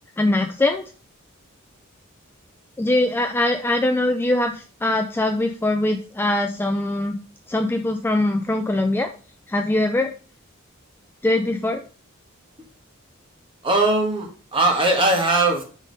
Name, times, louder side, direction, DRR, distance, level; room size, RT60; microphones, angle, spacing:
voice 1, 0.2-0.8 2.8-7.2 7.5-9.1 9.5-10.1 11.2-11.8, left 2 dB, 10° left, 5 dB, 0.3 m, -22 dB
voice 2, 13.6-15.6, right 2 dB, 25° right, 2 dB, 1.5 m, -20 dB
5.1 x 3.8 x 5.2 m, 0.37 s
head